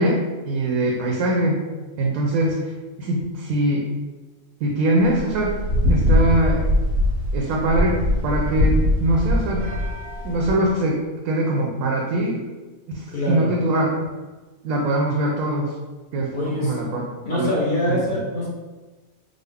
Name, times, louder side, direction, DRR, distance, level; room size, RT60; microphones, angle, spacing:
voice 1, 0.0-1.6 2.0-2.7 3.0-3.9 4.6-5.5 5.9-6.6 7.3-9.7 10.2-12.4 12.9-13.9 14.6-15.7 16.1-17.0 17.3-17.5 17.9-18.2, right 1 dB, 70° right, -2 dB, 0.9 m, -22 dB
sound 1, 5.1-10.5, left 1 dB, 90° right, 1.3 m, -21 dB
voice 2, 13.1-13.5 16.3-16.7 17.2-18.5, left 1 dB, 45° left, -5 dB, 0.7 m, -24 dB
3.8 x 2.0 x 3.4 m, 1.2 s
omnidirectional pair, 1.6 m